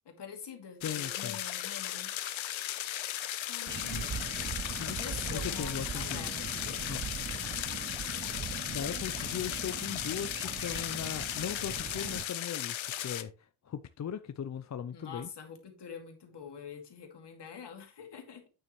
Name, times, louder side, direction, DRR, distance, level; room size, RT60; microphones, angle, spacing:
voice 1, 0.1-2.1 3.4-4.3 4.9-6.9 14.9-18.4, left 6 dB, 60° left, 2.3 m, -46 dB
sound 1, 0.8-13.2, left 12 dB, 75° left, 0.9 m, -36 dB
voice 2, 0.8-1.4 3.9-4.3 4.8-5.0 5.3-6.3 6.9-7.0 8.7-15.3, left 8 dB, 40° left, 0.5 m, -39 dB
sound 2, 3.7-12.3, right 7 dB, 25° right, 0.3 m, -41 dB
8.8 x 6.8 x 3.1 m
cardioid pair, 100°, 47 cm